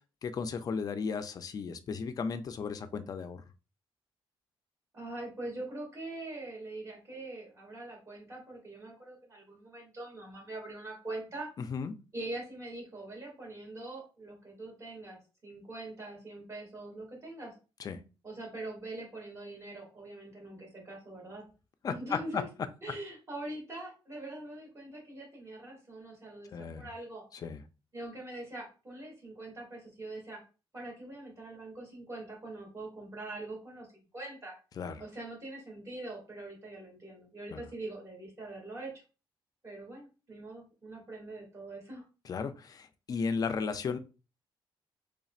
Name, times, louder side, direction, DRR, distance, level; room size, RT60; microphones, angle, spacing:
voice 1, 0.2-3.4 11.7-11.9 17.8-18.0 21.8-22.4 26.5-26.9 27.4-27.6 34.8-35.0 37.5-37.6 42.3-44.0, left 5 dB, 40° left, 10 dB, 0.4 m, -35 dB
voice 2, 4.9-11.5 12.1-17.5 18.2-21.5 21.9-22.5 22.8-27.2 27.9-30.4 30.7-34.5 35.0-39.0 39.6-42.0, right 2 dB, 30° right, -2 dB, 2.0 m, -43 dB
4.1 x 3.4 x 2.4 m, 0.33 s
cardioid pair, 140°, 9 cm